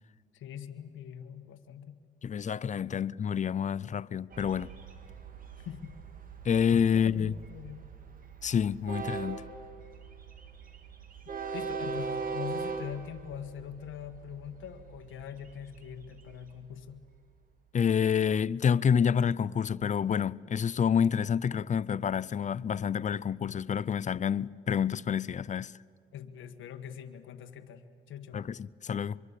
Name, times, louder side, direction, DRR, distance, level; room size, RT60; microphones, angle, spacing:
voice 1, 0.3-2.0 2.9-3.1 5.6-6.0 6.9-7.8 11.5-17.0 26.1-28.5, left 9 dB, 80° left, 1.6 m, -43 dB
voice 2, 2.2-4.7 6.4-7.3 8.4-9.4 17.7-25.7 28.3-29.2, left 7 dB, 40° left, 0.5 m, -28 dB
Train, 4.3-17.3, right 5 dB, 45° right, 2.4 m, -41 dB
25.0 x 23.0 x 8.4 m
cardioid pair, 90°, 20 cm